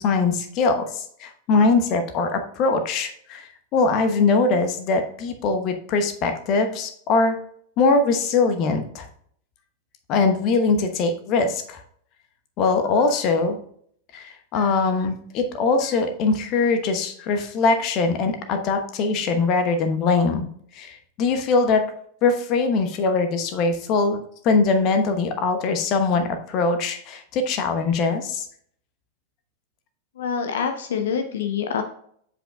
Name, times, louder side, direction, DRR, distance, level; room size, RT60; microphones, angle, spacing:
voice 1, 0.0-7.4 7.8-9.1 10.1-11.8 12.6-13.6 14.1-20.5 20.7-21.9 22.2-28.5, left 4 dB, 40° left, 7 dB, 1.0 m, -22 dB
voice 2, 30.2-31.8, left 7 dB, 60° left, 6 dB, 0.7 m, -26 dB
7.8 x 7.1 x 2.3 m, 0.63 s
figure-of-eight pair, 90°, 0 cm